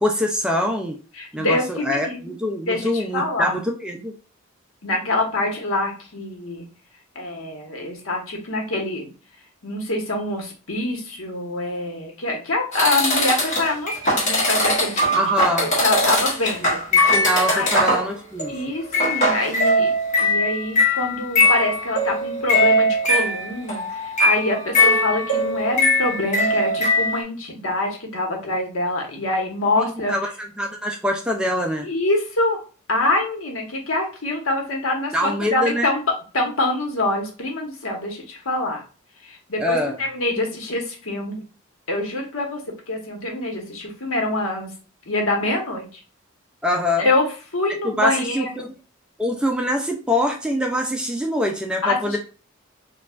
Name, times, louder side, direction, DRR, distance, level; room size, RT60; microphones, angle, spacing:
voice 1, 0.0-1.0 1.3-4.1 15.1-15.7 16.6-18.5 29.8-31.9 35.1-35.9 39.6-40.0 46.6-47.1 47.8-48.7 49.2-52.2, left 1 dB, 5° right, 2 dB, 0.4 m, -24 dB
voice 2, 1.2-2.3 2.6-3.6 4.8-6.7 7.1-9.1 9.6-15.3 15.6-16.8 17.5-17.7 18.5-19.9 20.2-30.1 31.8-32.6 32.9-36.0 36.3-38.8 39.2-41.4 41.9-42.6 42.9-44.7 45.1-46.0 47.0-47.2 47.5-48.6 51.8-52.2, left 2 dB, 70° left, 2 dB, 1.1 m, -25 dB
sound 1, 12.7-18.1 18.4-18.6 18.9-27.2, left 1 dB, 35° left, 1.4 m, -20 dB
4.6 x 2.3 x 2.4 m, 0.36 s
head